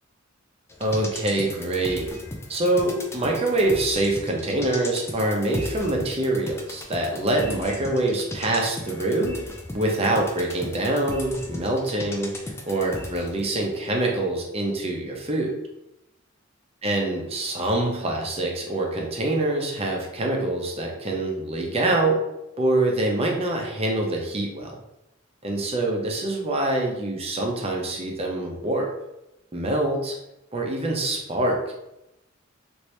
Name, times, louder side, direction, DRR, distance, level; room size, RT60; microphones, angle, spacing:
sound 1, 0.7-13.5 13.9-14.0, left 1 dB, 15° left, 0.3 m, -37 dB
voice 1, 0.8-2.1 2.5-9.4 9.7-12.3 12.6-15.5 16.8-22.2 22.6-24.7 25.4-28.9 29.5-30.2 30.5-31.7, right 2 dB, 30° right, 0 dB, 0.6 m, -25 dB
2.9 x 2.6 x 3.2 m, 0.88 s
head